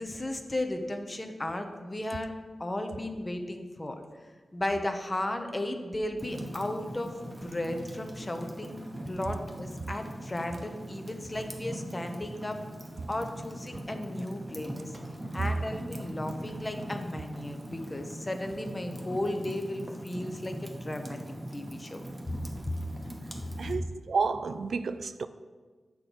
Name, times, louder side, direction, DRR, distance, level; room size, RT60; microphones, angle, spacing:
voice 1, 0.0-2.3 2.6-4.1 4.5-12.6 13.1-15.0 15.3-21.2 21.5-22.0 22.7-22.8 23.8-23.9, left 1 dB, 20° left, 0.7 m, -35 dB
Fire, 6.2-23.8, right 1 dB, 20° right, 0.9 m, -41 dB
voice 2, 23.6-25.3, right 4 dB, 75° right, 0.3 m, -31 dB
8.5 x 3.8 x 6.1 m
wide cardioid pair, 130°, 0 cm